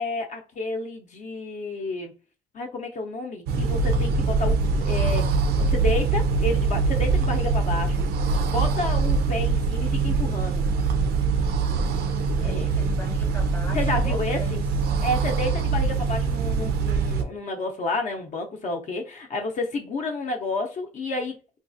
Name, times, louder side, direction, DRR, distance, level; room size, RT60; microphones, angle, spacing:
voice 1, 0.0-2.1 2.5-10.7 12.4-12.7 13.7-14.6 15.0-21.4, left 2 dB, 45° left, 0.6 m, -30 dB
sound 1, 3.5-17.2, right 4 dB, 70° right, 0.5 m, -23 dB
voice 2, 12.3-14.6 14.9-15.1, left 1 dB, 10° left, 0.7 m, -40 dB
3.9 x 2.3 x 2.6 m
cardioid pair, 110°, 17 cm